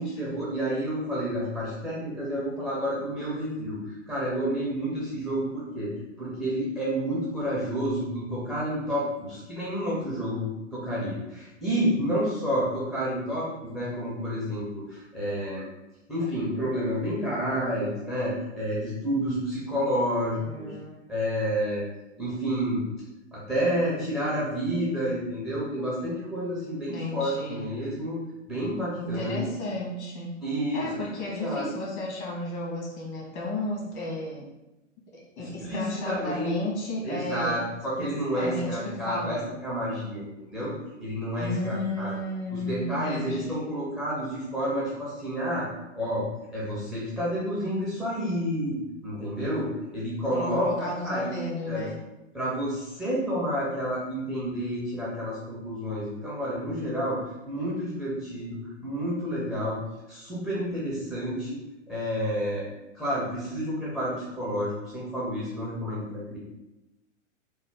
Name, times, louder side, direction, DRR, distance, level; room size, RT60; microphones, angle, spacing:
voice 1, 0.0-3.8 4.1-5.9 6.2-13.5 13.7-15.6 16.1-20.7 21.1-21.9 22.2-22.8 23.3-28.2 28.5-29.4 30.4-30.9 31.3-31.6 35.4-36.5 37.0-40.7 41.0-42.1 42.5-45.7 46.0-46.2 46.5-51.3 51.7-51.9 52.3-57.2 57.5-59.8 60.1-61.6 61.9-62.6 62.9-66.4, equal, ahead, -8 dB, 0.4 m, -30 dB
voice 2, 20.4-21.1 26.9-27.7 29.0-30.4 30.7-34.5 35.1-37.7 38.0-39.5 41.4-43.7 50.3-52.0, left 1 dB, 60° left, -2 dB, 1.4 m, -33 dB
3.0 x 2.2 x 3.3 m, 0.97 s
hypercardioid pair, 115°, 38 cm